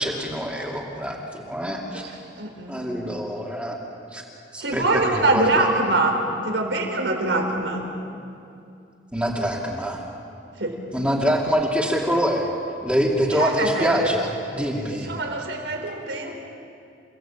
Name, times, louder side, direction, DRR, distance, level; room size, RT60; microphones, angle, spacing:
voice 1, 0.0-2.0 2.7-3.8 4.1-4.2 4.5-4.8 5.1-5.7 9.1-10.0 10.9-12.5 12.8-15.1, equal, 5° right, -2 dB, 2.5 m, -25 dB
voice 2, 2.4-2.9 4.6-7.9 10.6-10.8 13.3-14.2 14.5-16.4, right 2 dB, 80° right, 2 dB, 4.0 m, -24 dB
29.5 x 17.5 x 8.8 m, 2.5 s
head